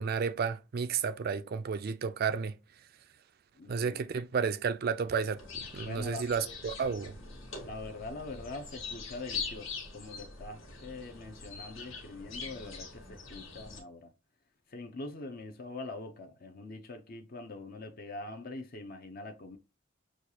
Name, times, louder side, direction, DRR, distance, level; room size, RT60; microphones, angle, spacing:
voice 1, 0.0-2.6 3.7-7.2, right 6 dB, 50° right, 0.4 m, -32 dB
voice 2, 3.6-4.0 5.8-6.6 7.6-14.1 14.7-19.6, left 2 dB, 45° left, 0.6 m, -43 dB
sound 1, 5.4-13.8, left 5 dB, 75° left, 1.5 m, -43 dB
6.3 x 2.4 x 2.8 m
head